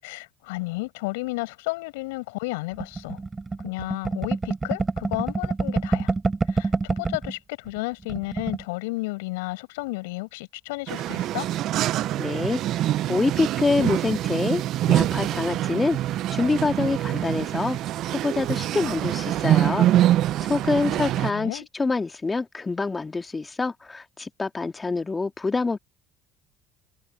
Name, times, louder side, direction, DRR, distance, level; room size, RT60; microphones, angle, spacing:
voice 1, 0.0-3.2 3.6-6.1 6.5-11.5 20.8-21.7, left 24 dB, 85° left, 7.3 m, -32 dB
sound 1, 2.8-7.3 7.7-7.8 8.0-8.6, right 3 dB, 25° right, 3.5 m, -26 dB
sound 2, 10.9-21.3, right 13 dB, 65° right, 0.4 m, -25 dB
voice 2, 12.2-16.0 16.3-17.8 18.1-19.9 20.4-25.8, left 3 dB, 25° left, 2.6 m, -26 dB
hypercardioid pair, 70°, 0 cm